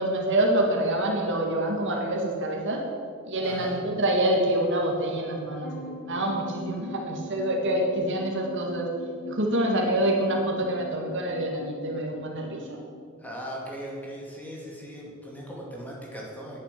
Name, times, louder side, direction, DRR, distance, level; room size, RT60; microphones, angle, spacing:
voice 1, 0.0-2.8 3.2-8.9 9.2-12.8, right 1 dB, 55° right, 1 dB, 1.9 m, -26 dB
sound 1, 5.6-13.0, left 2 dB, 40° left, 1.4 m, -42 dB
voice 2, 13.2-16.6, equal, 5° left, -3 dB, 2.5 m, -39 dB
10.5 x 9.8 x 7.5 m, 2.3 s
head